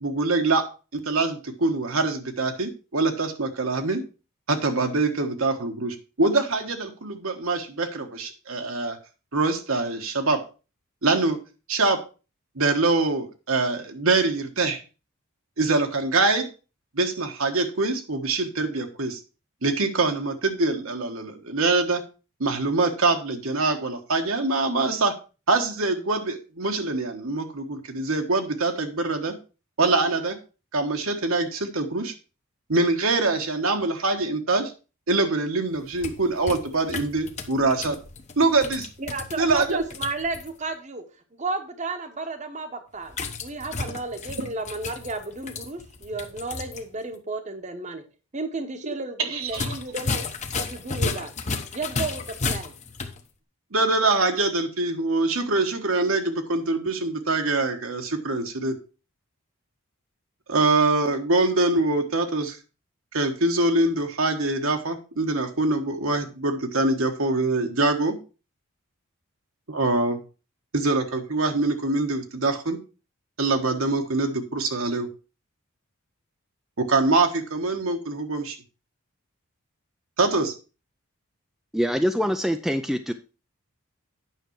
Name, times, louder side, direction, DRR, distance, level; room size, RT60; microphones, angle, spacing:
voice 1, 0.0-4.0 4.5-9.0 9.3-10.4 11.0-11.4 11.7-12.0 12.5-14.8 15.6-16.5 16.9-19.2 19.6-22.0 22.4-25.1 25.5-29.4 29.8-30.4 30.7-32.1 32.7-34.7 35.1-38.0 38.4-38.9 39.4-39.8 49.2-49.7 53.7-58.7 60.5-62.6 63.1-68.2 69.7-70.2 70.7-72.8 73.4-75.1 76.8-78.6 80.2-80.5, right 3 dB, 70° right, 5 dB, 1.4 m, -24 dB
sound 1, 35.8-40.5 43.1-46.8 47.1-47.2 49.4-53.2, left 4 dB, 30° left, 0.9 m, -33 dB
voice 2, 39.0-41.0 41.3-48.0 48.3-50.3 50.5-51.3 51.7-52.7, right 3 dB, 30° right, 8 dB, 1.0 m, -33 dB
voice 3, 81.7-83.1, equal, ahead, 7 dB, 0.4 m, -24 dB
9.1 x 6.2 x 4.6 m, 0.33 s
head